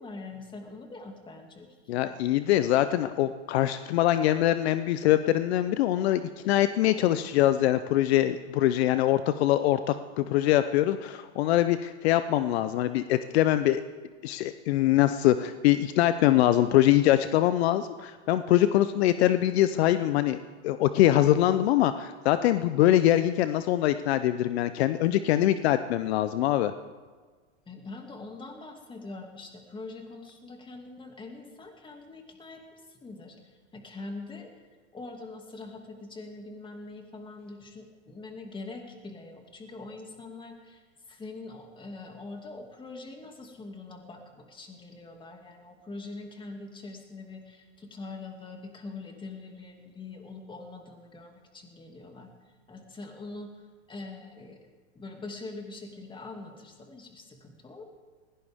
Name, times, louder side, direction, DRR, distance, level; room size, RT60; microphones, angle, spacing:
voice 1, 0.0-2.2 27.7-34.5 34.9-52.3 52.7-57.8, left 3 dB, 15° left, 3 dB, 2.5 m, -43 dB
voice 2, 1.9-13.8 14.2-20.4 20.6-26.7, left 13 dB, 65° left, 12 dB, 0.8 m, -23 dB
20.5 x 17.0 x 3.6 m, 1.4 s
hypercardioid pair, 125°, 35 cm